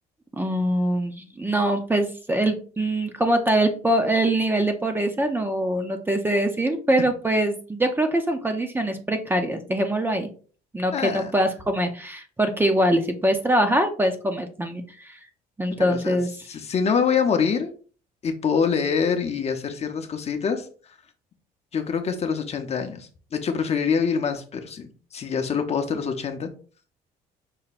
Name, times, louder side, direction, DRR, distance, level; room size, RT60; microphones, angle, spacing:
voice 1, 0.3-10.3 10.7-15.2 15.6-16.3, right 1 dB, 10° right, 6 dB, 0.6 m, -23 dB
voice 2, 10.9-11.3 15.8-16.2 16.5-17.7 18.2-20.7 21.7-26.5, left 6 dB, 40° left, 6 dB, 0.7 m, -25 dB
5.5 x 2.2 x 4.1 m, 0.39 s
cardioid pair, 110°, 17 cm